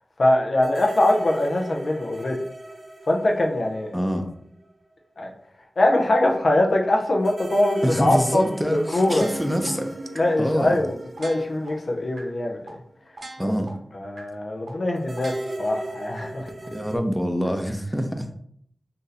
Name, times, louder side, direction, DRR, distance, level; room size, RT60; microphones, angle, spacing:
voice 1, 0.2-2.4 3.1-3.9 5.2-5.3 5.8-9.3 10.1-12.8 13.4-13.5 13.9-16.5, left 1 dB, 70° left, 1 dB, 0.5 m, -22 dB
sound 1, 0.6-4.4 4.6-4.7 7.2-12.6 15.0-17.0, right 2 dB, 45° right, 0.5 m, -37 dB
voice 2, 3.9-4.3 7.8-9.9 10.4-10.8 13.4-13.7 16.7-18.2, equal, ahead, 4 dB, 0.6 m, -25 dB
sound 2, 9.2-9.7 10.2-10.3 10.7-10.8 11.2-11.7 12.2-12.3 12.7-12.8 13.2-13.7 14.2-14.3 14.7-14.8 15.2-15.7 16.2-16.3, right 2 dB, 80° right, 1.1 m, -40 dB
2.6 x 2.5 x 4.0 m, 0.66 s
cardioid pair, 45°, 0 cm